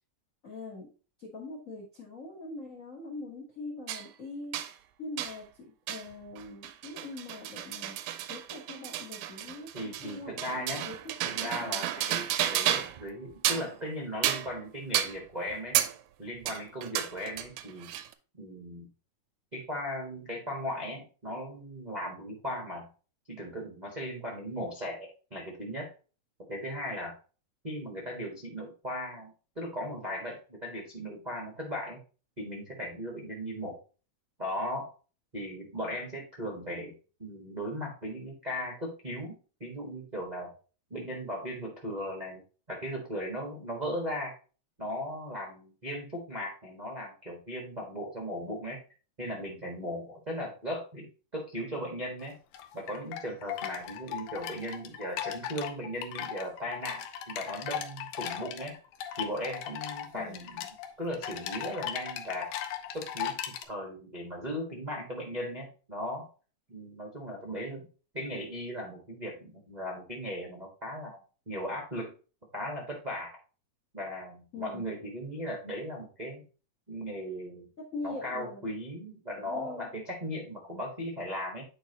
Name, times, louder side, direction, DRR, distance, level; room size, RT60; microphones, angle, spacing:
voice 1, 0.4-0.9 1.2-4.6 5.0-7.9 8.3-9.7 10.0-11.8 36.6-36.9 60.1-60.5 74.5-74.8 77.9-78.7 79.4-79.9, left 3 dB, 60° left, 0 dB, 0.8 m, -43 dB
sound 1, 3.9-4.1 4.5-4.7 5.2-5.4 5.9-6.1 6.4-13.0 13.3-13.8 14.2-14.6 14.9-15.2 15.8-16.0 16.5-18.1, right 12 dB, 85° right, 2.0 m, -32 dB
voice 2, 9.7-10.9 11.2-15.8 16.2-17.9 18.4-18.9 19.5-22.9 23.3-25.9 26.5-27.1 27.6-32.0 32.4-33.8 34.4-34.9 35.3-36.9 37.2-40.5 40.9-42.4 42.7-44.3 44.8-48.8 49.2-51.1 51.3-52.4 52.7-58.7 59.2-60.7 61.0-62.5 62.9-63.4 63.7-66.3 66.7-67.8 68.1-71.2 71.5-72.1 72.5-73.4 73.9-76.4 76.9-77.7 78.0-81.6, equal, 50° right, -3 dB, 0.5 m, -37 dB
sound 2, 52.2-63.6, left 10 dB, 85° left, 2.1 m, -38 dB
8.8 x 4.6 x 2.8 m, 0.35 s
omnidirectional pair, 3.4 m